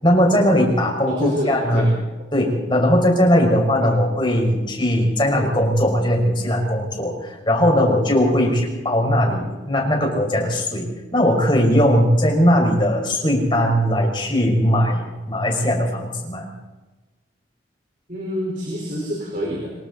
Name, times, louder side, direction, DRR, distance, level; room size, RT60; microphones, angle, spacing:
voice 1, 0.0-1.9 2.3-10.8 11.1-16.4, equal, 25° left, 1 dB, 5.9 m, -19 dB
voice 2, 1.0-1.9 3.8-3.9 8.2-8.5 18.1-19.7, equal, 45° right, -1 dB, 4.9 m, -27 dB
26.5 x 23.5 x 4.3 m, 1.2 s
head